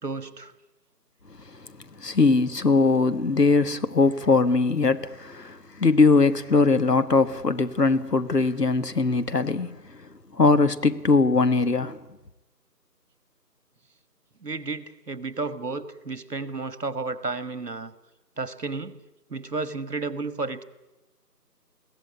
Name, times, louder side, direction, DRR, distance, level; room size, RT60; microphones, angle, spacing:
voice 1, 0.0-0.5 14.4-17.9 18.4-19.0 19.3-20.6, right 3 dB, 70° right, 1.7 m, -32 dB
voice 2, 2.0-9.7 10.4-12.0, left 3 dB, 70° left, 1.5 m, -21 dB
22.0 x 16.0 x 9.9 m
figure-of-eight pair, 170°, 49 cm